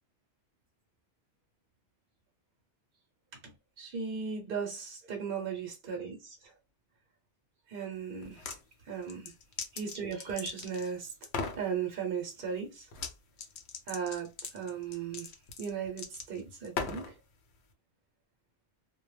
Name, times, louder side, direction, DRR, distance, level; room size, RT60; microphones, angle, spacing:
voice 1, 3.4-6.5 7.7-8.5 8.8-9.3 9.7-11.1 11.6-12.9 13.9-15.3 15.6-17.2, right 6 dB, 60° right, 0.8 m, -37 dB
sound 1, 8.2-8.6 9.1-10.9 11.2-11.6 12.9-13.1 13.4-17.1, left 5 dB, 90° left, 0.9 m, -39 dB
2.2 x 2.1 x 3.0 m
omnidirectional pair, 1.1 m